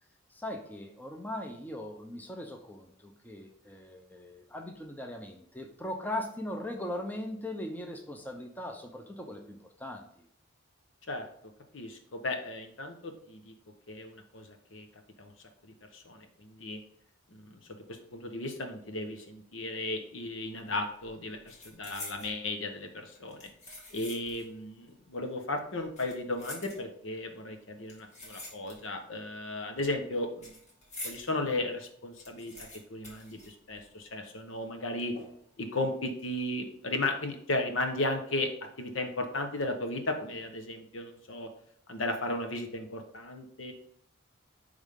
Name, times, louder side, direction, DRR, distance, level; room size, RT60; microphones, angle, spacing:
voice 1, 0.3-10.1, left 1 dB, 10° left, 3 dB, 0.6 m, -39 dB
voice 2, 11.7-13.5 13.9-14.9 15.2-15.3 15.6-16.8 17.3-17.6 17.9-23.5 23.9-30.5 31.0-32.5 32.9-35.1 35.6-38.5 38.8-41.5 41.9-43.7, left 2 dB, 75° left, 5 dB, 1.1 m, -35 dB
sound 1, 20.4-20.7 21.0-22.4 23.1-24.5 24.8-24.9 25.8-27.2 27.9-29.1 29.3-31.3 31.7-31.8 32.0-34.1 34.4-34.5 35.2-35.6 36.0-36.2, left 2 dB, 35° left, 2.0 m, -46 dB
10.5 x 3.6 x 3.6 m, 0.66 s
head